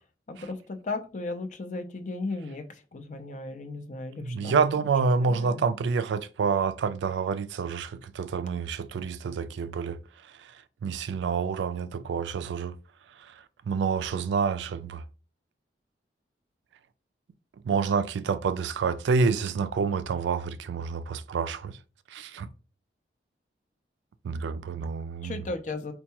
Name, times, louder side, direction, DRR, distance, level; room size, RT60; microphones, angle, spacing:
voice 1, 0.3-2.6 2.9-4.9 5.2-5.6 25.2-25.9, left 3 dB, 45° left, 0.5 m, -35 dB
voice 2, 4.2-10.0 10.8-12.7 13.7-15.0 17.6-21.7 22.1-22.5 24.2-25.4, right 5 dB, 80° right, 0.3 m, -28 dB
4.4 x 2.2 x 2.8 m
head